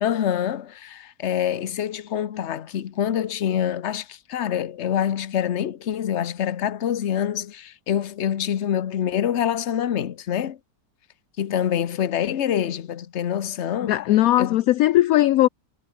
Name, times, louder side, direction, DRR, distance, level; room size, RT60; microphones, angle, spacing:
voice 1, 0.0-10.6 11.4-14.0 14.4-14.6, left 9 dB, 50° left, 1.1 m, -26 dB
voice 2, 13.9-15.5, left 14 dB, 70° left, 0.9 m, -18 dB
omnidirectional pair, 1.8 m